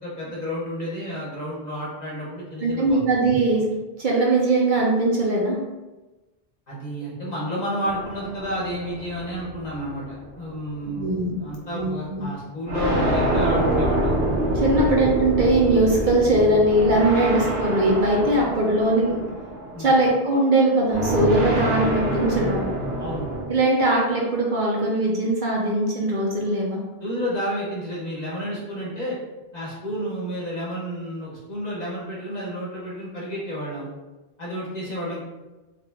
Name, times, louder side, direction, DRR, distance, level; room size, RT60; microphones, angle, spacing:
voice 1, 0.0-3.1 6.7-14.1 14.7-14.9 19.7-19.9 23.0-23.3 27.0-29.2 29.5-33.9 34.4-35.2, equal, 45° left, -7 dB, 1.2 m, -31 dB
voice 2, 2.6-3.6 4.0-5.6 10.9-11.3 11.7-12.2 14.5-19.2 19.8-22.7 23.5-26.8, right 2 dB, 55° right, -3 dB, 0.7 m, -20 dB
sound 1, 7.8-10.6 11.4-11.5 12.7-20.0 20.9-23.5, right 1 dB, 80° right, 1.0 m, -26 dB
3.4 x 2.4 x 3.3 m, 1.1 s
omnidirectional pair, 1.0 m